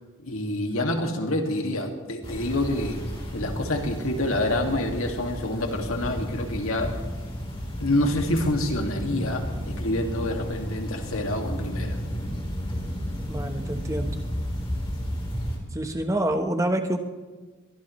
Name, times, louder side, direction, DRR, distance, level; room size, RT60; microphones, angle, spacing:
voice 1, 0.2-3.0 3.3-7.0 7.8-12.0, left 1 dB, 80° left, 3 dB, 2.1 m, -27 dB
sound 1, 2.2-15.6, equal, 25° left, 3.7 m, -32 dB
voice 2, 13.3-14.2 15.7-17.0, right 1 dB, 15° right, 5 dB, 1.0 m, -27 dB
23.0 x 19.5 x 3.2 m, 1.4 s
head